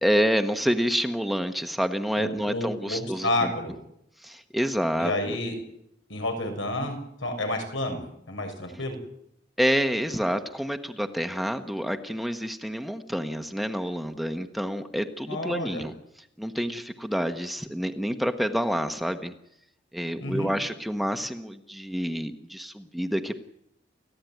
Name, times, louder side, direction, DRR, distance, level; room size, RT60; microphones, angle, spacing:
voice 1, 0.0-3.5 4.2-5.4 9.6-15.9 16.4-19.3 19.9-23.4, equal, ahead, 7 dB, 1.3 m, -28 dB
voice 2, 2.2-3.7 5.0-5.5 6.1-9.0 15.3-15.8 20.2-20.5, left 1 dB, 80° left, 5 dB, 7.2 m, -30 dB
30.0 x 15.0 x 9.4 m, 0.77 s
head